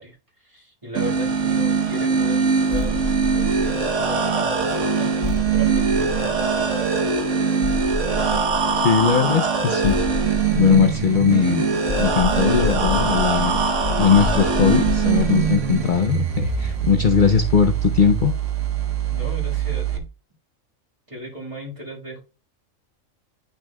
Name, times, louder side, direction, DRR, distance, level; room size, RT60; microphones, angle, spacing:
voice 1, 0.0-6.7 19.1-20.0 21.1-22.2, left 1 dB, 25° right, 1.8 m, -36 dB
sound 1, 0.9-20.0, right 5 dB, 60° right, 1.2 m, -22 dB
sound 2, 2.7-4.2 5.2-6.8 7.6-9.0 9.8-11.4 11.9-17.1, equal, 25° left, 1.6 m, -29 dB
voice 2, 8.7-10.0 10.5-11.7 12.0-13.7 14.0-18.3, left 7 dB, 65° left, 0.5 m, -19 dB
10.0 x 6.1 x 2.3 m
omnidirectional pair, 1.5 m